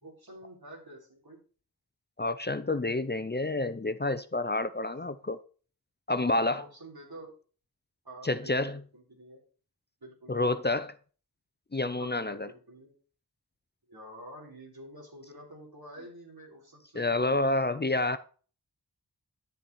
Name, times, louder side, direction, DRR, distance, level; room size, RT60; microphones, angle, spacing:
voice 1, 0.0-1.4 4.8-5.0 6.4-7.3 8.0-9.4 10.0-10.8 12.0-12.9 13.9-17.1, right 1 dB, 70° right, 4.0 m, -48 dB
voice 2, 2.2-5.4 6.1-6.6 8.2-8.8 10.3-10.9 11.7-12.5 16.9-18.2, left 2 dB, 25° left, 0.6 m, -29 dB
11.0 x 7.3 x 4.2 m
wide cardioid pair, 45°, 38 cm